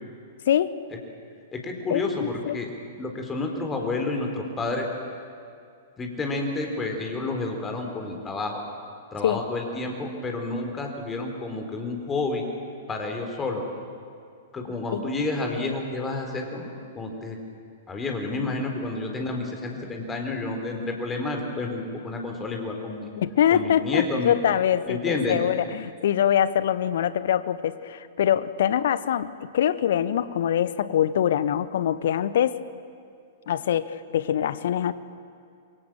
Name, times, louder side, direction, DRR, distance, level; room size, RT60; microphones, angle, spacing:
voice 1, 0.5-0.8 1.9-2.6 9.2-9.4 14.9-15.0 23.2-32.6 33.5-34.9, left 10 dB, 55° left, 16 dB, 1.0 m, -24 dB
voice 2, 1.5-2.7 3.0-4.9 6.0-8.6 9.1-12.5 12.9-13.6 14.5-16.7 16.9-17.4 17.9-23.1 23.5-24.3 24.9-25.4, left 3 dB, 15° left, 3 dB, 4.3 m, -30 dB
27.5 x 24.0 x 7.6 m, 2.3 s
figure-of-eight pair, 105°, 0 cm